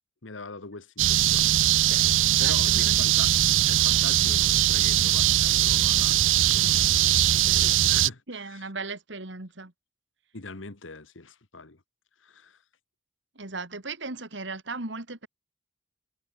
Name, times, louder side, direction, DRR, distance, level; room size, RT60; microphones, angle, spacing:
voice 1, 0.2-2.1 2.4-3.3 3.7-7.3 7.8-8.7 10.3-11.8 12.2-12.6, left 3 dB, 85° left, 1.7 m, -42 dB
sound 1, 1.0-8.1, right 13 dB, 85° right, 0.7 m, -21 dB
voice 2, 2.4-3.0 8.3-9.7 13.4-15.3, right 3 dB, 70° right, 2.4 m, -37 dB
head